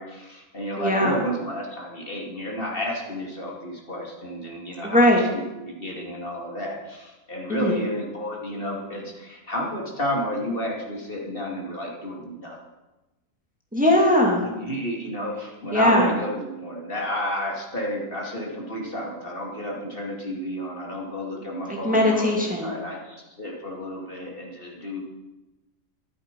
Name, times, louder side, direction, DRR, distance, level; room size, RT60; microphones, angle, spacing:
voice 1, 0.0-12.6 14.4-25.0, equal, 40° left, -1 dB, 2.6 m, -31 dB
voice 2, 0.8-1.2 4.8-5.2 7.5-7.8 13.7-14.4 15.7-16.1 21.7-22.7, left 1 dB, 5° right, 0 dB, 2.2 m, -20 dB
13.5 x 12.0 x 5.3 m, 1.1 s
omnidirectional pair, 1.4 m